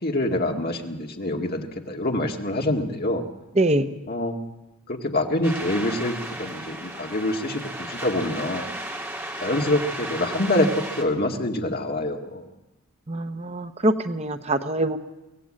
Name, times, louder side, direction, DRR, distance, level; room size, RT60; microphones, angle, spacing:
voice 1, 0.0-3.2 4.1-4.4 4.9-8.7 9.4-12.5, left 1 dB, 45° left, 2 dB, 2.1 m, -26 dB
voice 2, 3.6-3.9 13.1-15.0, right 1 dB, 30° right, 8 dB, 0.9 m, -24 dB
sound 1, 5.4-11.0, right 1 dB, 10° right, 2.5 m, -34 dB
24.0 x 16.5 x 8.8 m, 1.0 s
head